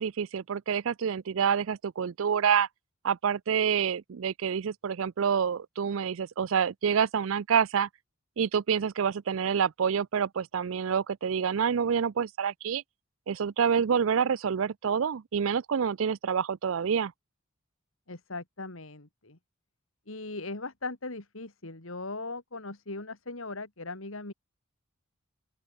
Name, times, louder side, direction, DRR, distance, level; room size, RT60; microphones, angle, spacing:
voice 1, 0.0-2.7 3.0-7.9 8.4-12.8 13.3-17.1, right 7 dB, 70° right, 0.4 m, -27 dB
voice 2, 18.1-19.4 20.1-24.3, left 3 dB, 75° left, 3.0 m, -39 dB
open air
head